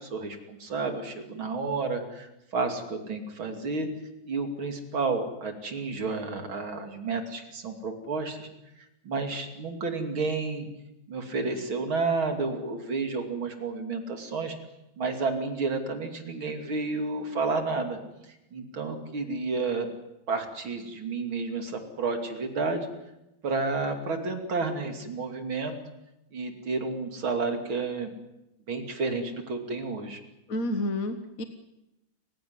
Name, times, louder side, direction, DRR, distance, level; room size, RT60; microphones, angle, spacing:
voice 1, 0.0-3.9 4.2-8.5 9.1-10.7 11.1-14.6 15.0-18.0 18.5-19.9 20.3-22.9 23.4-25.8 26.3-28.1 28.7-30.2, right 3 dB, 90° right, 5 dB, 3.6 m, -31 dB
voice 2, 30.5-31.4, left 1 dB, 45° left, 7 dB, 1.7 m, -30 dB
29.5 x 16.0 x 9.6 m, 0.93 s
omnidirectional pair, 2.2 m